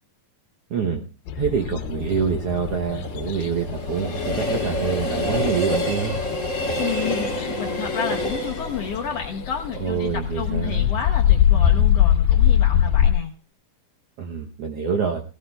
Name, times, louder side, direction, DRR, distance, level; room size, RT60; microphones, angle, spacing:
voice 1, 0.7-1.0 1.3-6.2 9.8-10.9 14.2-15.2, right 6 dB, 70° right, 2 dB, 1.5 m, -26 dB
sound 1, 1.3-13.1, left 10 dB, 85° left, 2.4 m, -23 dB
Train, 1.8-10.9 11.3-11.4, left 1 dB, 25° left, 3.2 m, -29 dB
voice 2, 6.8-13.3, left 7 dB, 70° left, 2 dB, 1.5 m, -31 dB
17.0 x 17.0 x 2.3 m, 0.34 s
omnidirectional pair, 3.8 m